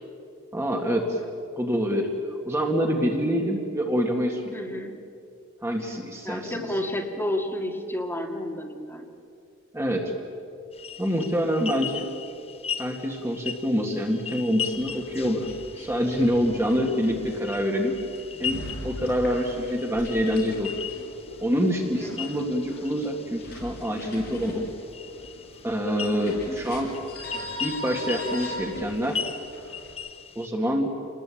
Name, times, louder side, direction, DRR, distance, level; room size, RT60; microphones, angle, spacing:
voice 1, 0.5-1.2 1.6-4.6 5.6-6.7 9.7-10.1 11.0-12.1 12.8-15.5 15.8-18.0 18.4-20.7 21.4-24.7 25.6-26.9 27.6-29.2 30.4-30.9, equal, 10° right, 1 dB, 1.9 m, -26 dB
voice 2, 4.5-5.0 6.3-9.1 16.5-16.9 21.8-22.2 26.1-26.6, left 1 dB, 10° left, 1 dB, 2.3 m, -32 dB
bellbirds Australia, 10.7-30.5, left 7 dB, 30° left, 0.9 m, -39 dB
sound 1, 14.6-29.9, left 1 dB, 50° left, 6.9 m, -41 dB
28.0 x 20.5 x 8.6 m, 2.6 s
head